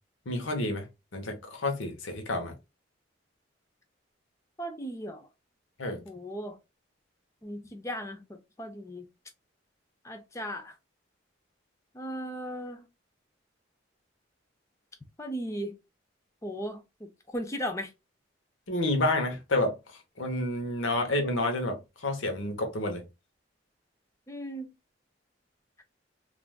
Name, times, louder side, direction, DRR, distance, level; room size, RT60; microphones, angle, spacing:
voice 1, 0.3-0.9 1.1-2.5 5.8-6.0 18.7-19.8 20.2-23.0, left 2 dB, 85° left, 0.9 m, -29 dB
voice 2, 4.6-5.3 6.1-6.6 7.4-9.1 10.0-10.7 11.9-12.9 15.2-15.8 16.4-17.9 24.3-24.7 25.8-25.9, equal, 15° left, 0.5 m, -37 dB
3.3 x 2.5 x 2.3 m
head